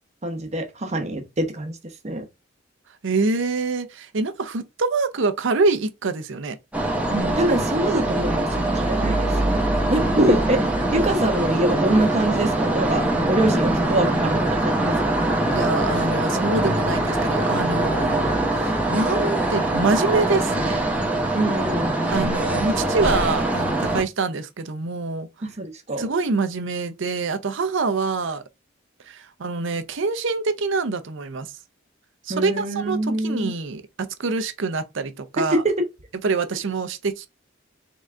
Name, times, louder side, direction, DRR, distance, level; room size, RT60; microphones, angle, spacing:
voice 1, 0.2-1.8 2.0-2.2 7.1-8.5 8.7-9.6 9.9-10.6 10.9-15.2 21.3-22.3 25.4-26.0 32.3-33.5, right 1 dB, 35° right, 0.9 m, -25 dB
voice 2, 3.0-6.6 10.0-10.4 13.7-14.6 15.5-20.8 22.1-25.3 26.0-28.4 29.1-31.5 32.3-35.6 36.2-37.3, right 3 dB, 70° right, 0.6 m, -25 dB
sound 1, 6.7-24.0, right 1 dB, 5° right, 1.0 m, -23 dB
3.9 x 3.6 x 3.2 m
head